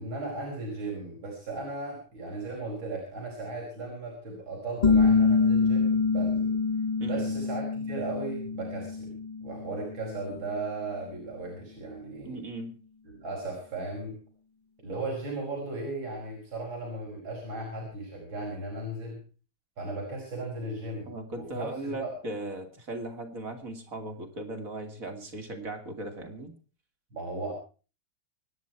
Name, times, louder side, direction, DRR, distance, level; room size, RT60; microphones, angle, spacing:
voice 1, 0.0-6.5 7.0-12.4 13.2-14.1 14.8-19.2 19.8-22.1 27.1-27.5, right 2 dB, 70° right, -1 dB, 5.9 m, -36 dB
sound 1, 4.8-10.2, left 4 dB, 45° left, 0.5 m, -25 dB
voice 2, 7.0-7.4 12.2-12.8 21.0-26.5, right 2 dB, 40° right, 5 dB, 3.1 m, -38 dB
25.5 x 10.5 x 4.6 m, 0.36 s
omnidirectional pair, 2.3 m